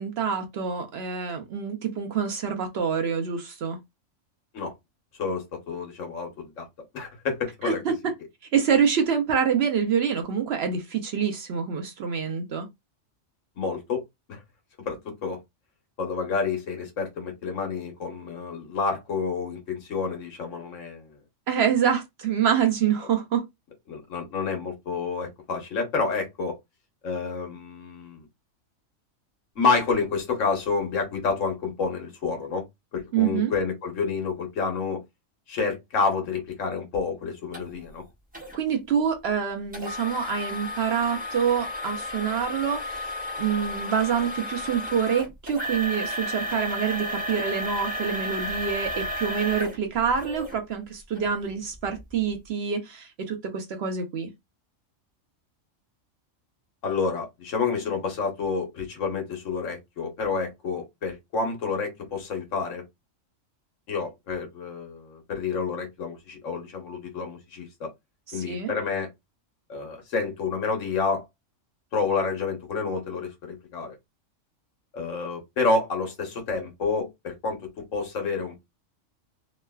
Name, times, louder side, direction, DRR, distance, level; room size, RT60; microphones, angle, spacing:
voice 1, 0.0-3.8 7.6-8.1 8.5-12.7 21.5-23.4 33.1-33.5 38.5-54.3 68.3-68.7, right 7 dB, 65° right, 0.7 m, -26 dB
voice 2, 5.1-6.7 6.9-7.8 13.6-14.4 14.8-15.4 16.0-21.1 23.9-26.6 27.0-28.3 29.6-32.6 32.9-35.0 35.5-38.0 56.8-62.8 63.9-67.9 68.3-69.1 69.7-71.2 71.9-74.0 74.9-78.6, left 4 dB, 70° left, 1.3 m, -29 dB
sound 1, 37.5-37.6 38.3-38.6 39.7-50.6 51.2-51.3 51.9-52.0, equal, 10° right, 0.9 m, -33 dB
3.1 x 2.1 x 2.2 m
omnidirectional pair, 1.4 m